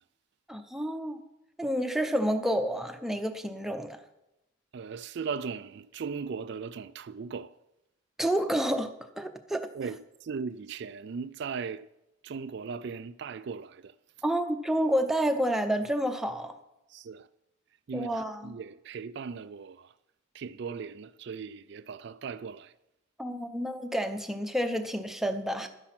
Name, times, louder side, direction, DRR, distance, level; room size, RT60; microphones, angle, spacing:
voice 1, 0.5-1.2 1.6-4.0 8.2-9.7 14.2-16.6 17.9-18.5 23.2-25.7, equal, ahead, 0.7 m, -29 dB
voice 2, 4.7-7.5 9.7-11.9 12.2-13.9 16.9-17.3 17.9-19.9 20.3-22.7, right 5 dB, 55° right, 0.3 m, -38 dB
12.0 x 10.0 x 5.9 m
head